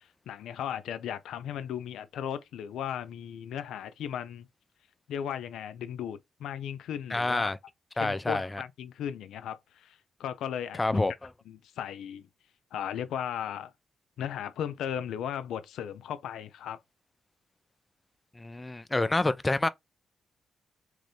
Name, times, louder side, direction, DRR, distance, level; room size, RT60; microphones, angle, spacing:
voice 1, 0.0-4.5 5.1-7.5 8.0-11.0 11.5-12.3 12.7-13.7 14.2-16.8, left 9 dB, 90° left, 0.3 m, -36 dB
voice 2, 7.1-7.6 8.0-8.6 10.8-11.3 18.4-19.7, left 2 dB, 20° left, 0.4 m, -28 dB
3.0 x 2.6 x 3.4 m
cardioid pair, 80°, 0 cm